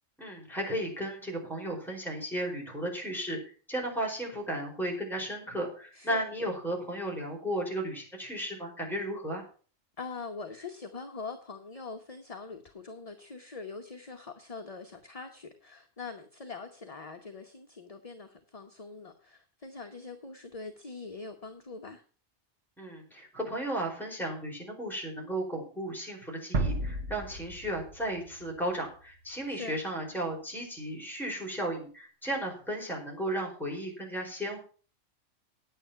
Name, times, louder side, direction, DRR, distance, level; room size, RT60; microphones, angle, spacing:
voice 1, 0.2-3.4 3.7-9.4 22.8-34.6, right 1 dB, ahead, -2 dB, 4.5 m, -34 dB
voice 2, 5.9-6.2 10.0-22.0 29.5-29.8, left 4 dB, 30° left, 5 dB, 1.0 m, -43 dB
sound 1, 26.5-29.4, right 2 dB, 70° right, 1.4 m, -34 dB
10.0 x 9.2 x 5.7 m, 0.40 s
omnidirectional pair, 1.3 m